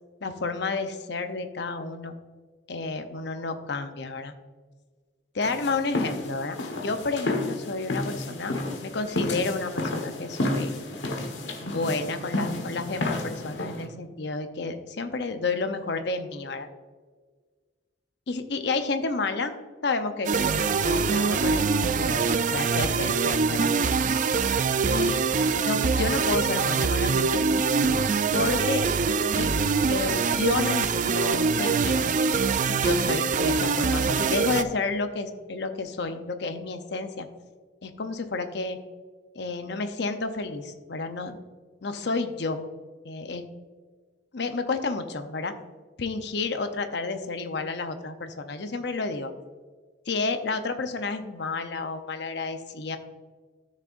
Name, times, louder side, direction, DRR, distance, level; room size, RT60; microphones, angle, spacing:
voice 1, 0.2-2.1 2.7-4.3 5.3-6.6 6.8-8.5 8.8-10.7 11.6-16.7 18.3-19.6 19.8-21.7 22.0-23.7 24.9-25.2 25.6-27.4 28.3-28.8 29.3-29.5 29.9-32.1 32.7-37.3 37.8-38.8 39.3-41.4 41.8-42.7 43.0-43.4 44.3-45.5 46.0-49.3 50.1-53.0, left 3 dB, 65° left, 8 dB, 0.7 m, -30 dB
sound 1, 5.4-13.9, left 2 dB, 90° left, 1.3 m, -31 dB
sound 2, 20.2-34.6, right 5 dB, 45° right, 0.4 m, -24 dB
13.0 x 6.4 x 2.6 m, 1.5 s
head